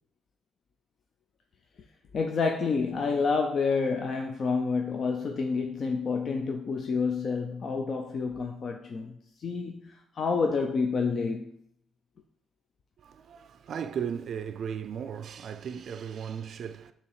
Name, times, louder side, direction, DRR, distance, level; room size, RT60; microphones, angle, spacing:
voice 1, 2.1-9.1 9.4-11.5, left 4 dB, 50° left, 0.5 m, -28 dB
voice 2, 13.0-16.9, right 7 dB, 60° right, 0.4 m, -36 dB
6.9 x 2.9 x 4.8 m
cardioid pair, 90°, 0 cm